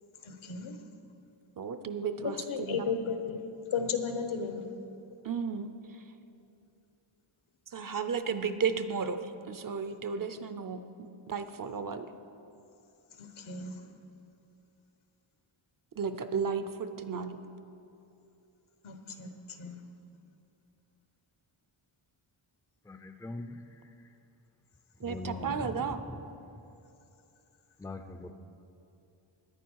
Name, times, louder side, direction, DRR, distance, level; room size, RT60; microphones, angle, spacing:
voice 1, 0.2-0.8 2.2-3.4 3.7-4.7 13.2-13.8 18.8-19.7, left 5 dB, 75° left, 6 dB, 1.3 m, -35 dB
voice 2, 1.6-2.9 5.2-5.7 7.7-9.2 9.5-10.8 11.3-12.1 16.0-17.4 25.0-26.0, right 6 dB, 40° right, 10 dB, 0.6 m, -33 dB
voice 3, 22.9-23.6 25.0-26.2 27.8-28.3, left 2 dB, 5° left, 7 dB, 0.5 m, -41 dB
18.0 x 10.5 x 4.7 m, 2.8 s
wide cardioid pair, 145°, 49 cm